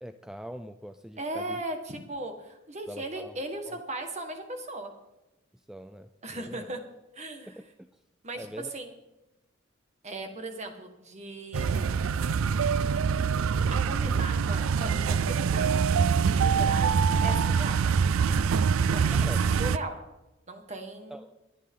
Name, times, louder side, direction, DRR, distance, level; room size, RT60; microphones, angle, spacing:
voice 1, 0.0-1.6 2.9-3.3 3.7-3.8 5.7-6.7 7.4-7.9 8.4-8.7 18.3-18.6 19.1-19.4 21.1-21.3, equal, 5° right, 9 dB, 0.4 m, -43 dB
voice 2, 1.2-4.9 6.2-6.8 7.1-7.5 8.2-8.5 8.7-8.9 10.0-12.3 13.8-15.8 16.2-17.8 18.9-19.3 19.6-20.0 20.5-21.2, right 2 dB, 35° right, 5 dB, 1.7 m, -38 dB
sound 1, 11.5-19.8, right 6 dB, 85° right, 0.4 m, -24 dB
22.5 x 8.6 x 3.8 m, 0.98 s
head